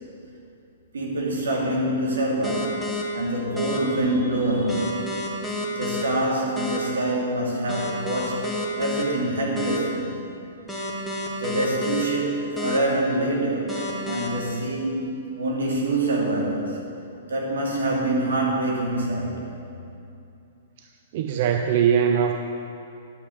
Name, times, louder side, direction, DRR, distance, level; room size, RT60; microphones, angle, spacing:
voice 1, 0.9-5.0 5.3-8.5 8.8-10.2 11.4-13.7 14.0-15.1 15.4-16.8 17.3-19.4, right 1 dB, 90° right, -2 dB, 2.4 m, -25 dB
sound 1, 2.4-3.0 3.6-3.8 4.7-6.0 6.6-6.8 7.7-9.0 9.6-9.8 10.7-12.0 12.6-12.8 13.7-14.3, left 2 dB, ahead, 1.6 m, -30 dB
voice 2, 21.1-22.4, right 8 dB, 50° right, 5 dB, 0.5 m, -21 dB
11.0 x 5.7 x 6.4 m, 2.6 s
hypercardioid pair, 135°, 0 cm